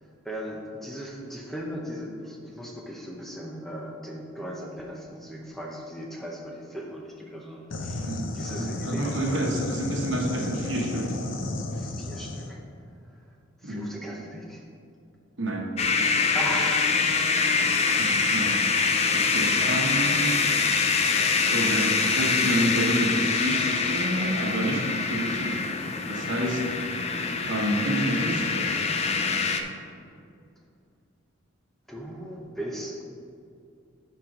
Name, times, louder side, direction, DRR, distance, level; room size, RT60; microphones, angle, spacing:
voice 1, 0.0-9.4 11.7-12.6 13.0-14.6 16.3-17.3 31.9-33.0, equal, ahead, -2 dB, 0.7 m, -38 dB
sound 1, 7.7-12.5, left 2 dB, 65° left, 0.7 m, -33 dB
voice 2, 8.6-11.2 13.6-13.9 15.4-15.7 18.0-18.6 19.1-20.4 21.5-25.6 26.1-26.7 27.4-28.7, right 1 dB, 65° right, 0 dB, 1.2 m, -28 dB
sound 2, 15.8-29.6, left 4 dB, 30° left, 0.4 m, -25 dB
9.3 x 4.6 x 5.0 m, 2.5 s
head